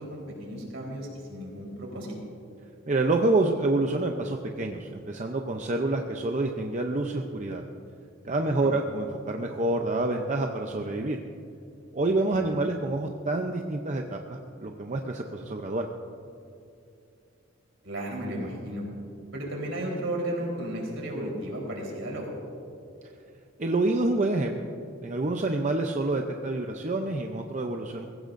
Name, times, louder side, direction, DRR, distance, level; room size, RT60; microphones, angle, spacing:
voice 1, 0.0-2.2 8.6-8.7 12.3-12.5 17.8-18.8 19.3-22.3, right 1 dB, 70° right, -2 dB, 3.9 m, -34 dB
voice 2, 2.9-7.6 8.2-11.2 11.9-15.9 23.6-24.7 25.0-28.1, right 2 dB, 35° right, 3 dB, 0.6 m, -27 dB
22.0 x 15.5 x 2.6 m, 2.5 s
head